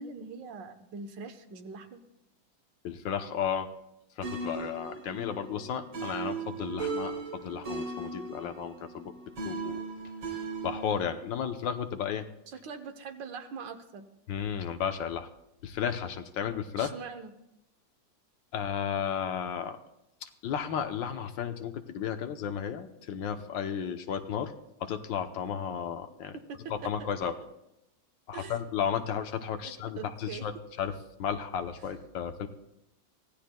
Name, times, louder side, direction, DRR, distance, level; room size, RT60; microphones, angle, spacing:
voice 1, 0.0-2.0 12.5-14.1 16.8-17.3 26.5-27.3 28.3-28.6 30.0-30.4, right 5 dB, 70° right, 7 dB, 1.6 m, -42 dB
voice 2, 2.8-3.7 4.2-9.1 9.4-9.8 10.6-12.3 14.3-15.3 15.6-16.9 18.5-19.8 20.2-24.5 24.8-26.4 26.7-27.3 28.3-32.5, left 8 dB, 75° left, 7 dB, 1.5 m, -33 dB
sound 1, 4.2-11.1, right 4 dB, 85° right, 3.0 m, -38 dB
23.5 x 16.0 x 2.2 m, 0.86 s
omnidirectional pair, 2.1 m